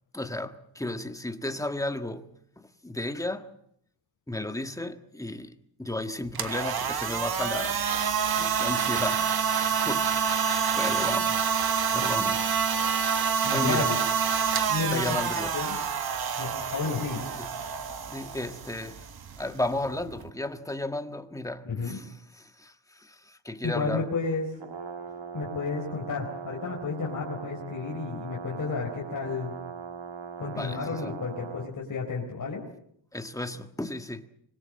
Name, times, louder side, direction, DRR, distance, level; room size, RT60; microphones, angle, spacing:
voice 1, 0.1-3.6 4.3-5.5 5.8-11.4 11.9-12.5 13.5-13.9 14.9-15.5 17.3-17.5 18.1-19.0 19.4-24.0 30.5-31.3 33.1-34.3, left 1 dB, 5° left, 1.5 m, -34 dB
sound 1, 6.2-20.3, right 7 dB, 55° right, 1.7 m, -27 dB
voice 2, 13.4-14.0 14.7-15.0 15.5-15.8 16.4-17.2 21.6-22.0 23.6-24.4 25.3-29.5 30.4-32.6, left 4 dB, 45° left, 4.3 m, -31 dB
Brass instrument, 24.5-31.7, right 6 dB, 70° right, 2.6 m, -40 dB
25.0 x 21.5 x 7.6 m
cardioid pair, 120°, 46 cm